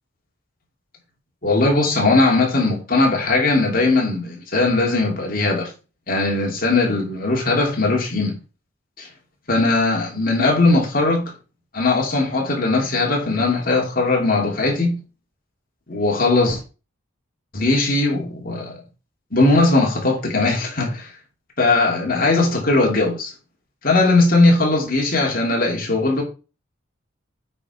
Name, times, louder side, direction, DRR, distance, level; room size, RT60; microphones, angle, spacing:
voice 1, 1.4-5.7 6.1-8.3 9.0-9.1 9.5-11.3 11.7-15.0 15.9-16.6 17.5-18.7 19.3-21.1 21.6-23.3 23.8-26.2, left 2 dB, 45° left, 2.7 m, -19 dB
8.6 x 4.5 x 5.0 m
head